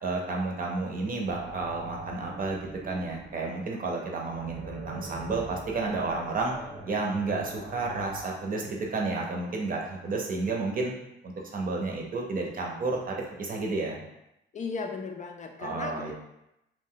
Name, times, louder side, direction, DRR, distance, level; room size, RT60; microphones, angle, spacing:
voice 1, 0.0-6.5 6.9-10.9 11.2-14.0 15.6-16.1, right 3 dB, 45° right, 0 dB, 0.7 m, -31 dB
sound 1, 1.3-8.2, right 2 dB, 80° right, 0.7 m, -42 dB
voice 2, 14.5-16.1, left 4 dB, 40° left, 3 dB, 0.4 m, -36 dB
2.5 x 2.2 x 3.7 m, 0.85 s
cardioid pair, 90°, 20 cm